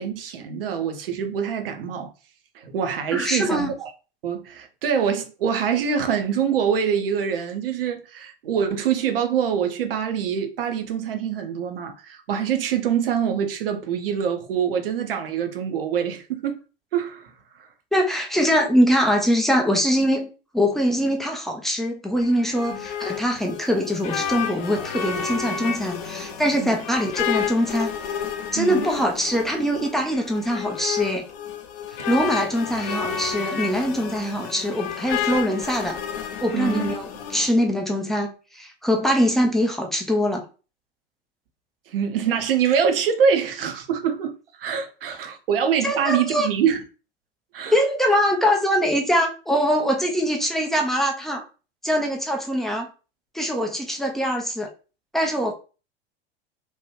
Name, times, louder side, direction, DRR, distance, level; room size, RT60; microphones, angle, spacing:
voice 1, 0.0-2.1 2.5-3.9 4.2-16.6 16.9-17.3 22.7-22.9 26.6-26.8 28.6-28.8 36.5-36.8 41.9-46.8 47.5-47.8, right 7 dB, 65° right, 0.6 m, -25 dB
voice 2, 3.1-3.7 17.9-20.3 20.5-28.2 28.5-31.3 31.9-36.0 36.4-40.5 45.8-46.5 47.7-51.4 51.8-52.9 53.3-54.7 55.1-55.5, equal, ahead, 0.3 m, -23 dB
sound 1, 22.2-37.5, left 7 dB, 40° left, 0.6 m, -31 dB
3.0 x 2.3 x 3.0 m
figure-of-eight pair, 80°, 31 cm